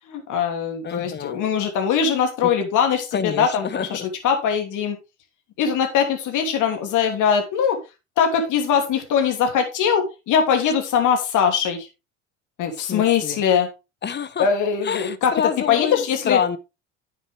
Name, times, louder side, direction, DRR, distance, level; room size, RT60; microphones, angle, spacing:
voice 1, 0.1-5.0 5.6-7.8 8.2-11.9 12.6-13.7 14.4-15.3 15.7-16.4, left 7 dB, 55° left, 2.9 m, -21 dB
voice 2, 0.8-1.4 2.4-2.5 3.1-4.0 12.9-13.4 14.0-14.5 14.8-16.6, left 7 dB, 30° left, 1.0 m, -27 dB
9.4 x 7.2 x 3.5 m
hypercardioid pair, 70°, 36 cm